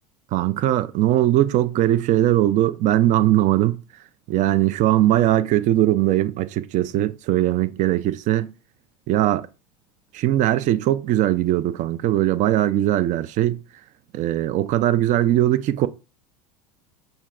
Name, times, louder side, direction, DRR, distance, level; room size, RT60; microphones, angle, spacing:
voice 1, 0.3-3.8 4.3-8.5 9.1-9.5 10.1-13.6 14.1-15.9, right 13 dB, 40° right, 0.4 m, -20 dB
6.2 x 2.2 x 3.6 m
hypercardioid pair, 100°, 19 cm